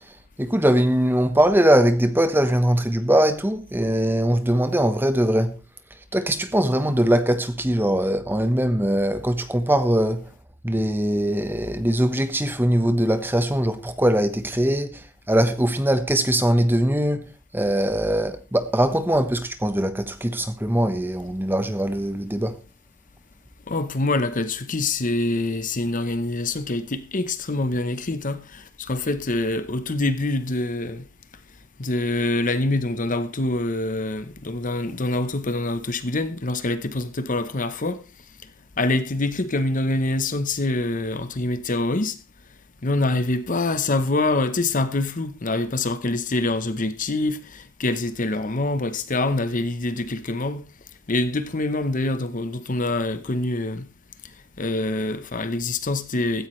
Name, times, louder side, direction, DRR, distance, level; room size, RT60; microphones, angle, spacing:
voice 1, 0.4-5.5 6.1-10.3 10.6-17.3 17.5-22.6, right 1 dB, 10° right, 1.1 m, -21 dB
voice 2, 23.7-31.1 31.8-38.0 38.8-42.2 42.8-50.6 51.1-53.9 54.6-56.5, left 2 dB, 35° left, 0.9 m, -25 dB
16.0 x 14.0 x 3.2 m
head